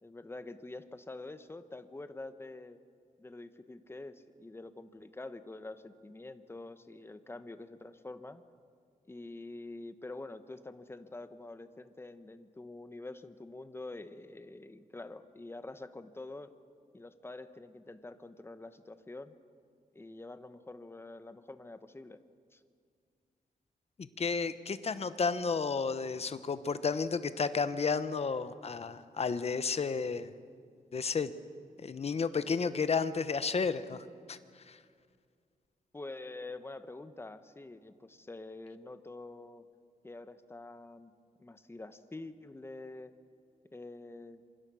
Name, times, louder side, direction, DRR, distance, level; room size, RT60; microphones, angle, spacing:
voice 1, 0.0-2.8 3.2-8.4 9.1-16.5 16.9-19.3 19.9-22.2 22.5-22.6 35.9-39.7 40.0-41.1 41.4-43.1 43.7-44.4, left 2 dB, 15° left, 11 dB, 1.0 m, -46 dB
voice 2, 24.0-30.3 30.9-31.3 31.8-34.4 34.7-34.8, left 5 dB, 45° left, 12 dB, 1.0 m, -32 dB
27.0 x 24.5 x 6.3 m, 2.2 s
wide cardioid pair, 135°, 15 cm